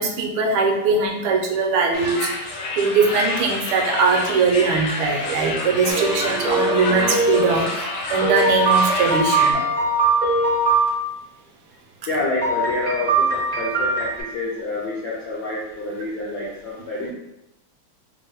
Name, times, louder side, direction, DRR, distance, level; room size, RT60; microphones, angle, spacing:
voice 1, 0.0-2.3 2.8-9.6 17.0-17.1, right 4 dB, 80° right, 1 dB, 1.4 m, -21 dB
sound 1, 1.9-9.5, left 2 dB, 90° left, 1.6 m, -29 dB
sound 2, 5.9-7.6 8.2-10.9 12.4-14.2, right 3 dB, 45° right, 0.5 m, -21 dB
voice 2, 12.1-17.1, left 2 dB, 75° left, -5 dB, 0.9 m, -27 dB
4.0 x 2.0 x 3.8 m, 0.87 s
omnidirectional pair, 2.4 m